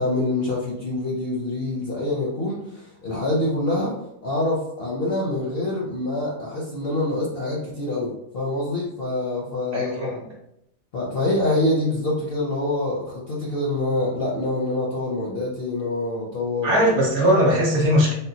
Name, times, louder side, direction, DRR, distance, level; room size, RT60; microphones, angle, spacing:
voice 1, 0.0-10.2 10.9-16.8, left 2 dB, 60° left, -4 dB, 0.6 m, -26 dB
voice 2, 9.7-10.1 16.6-18.1, equal, 60° right, -2 dB, 0.9 m, -19 dB
3.6 x 2.2 x 2.6 m, 0.79 s
omnidirectional pair, 1.6 m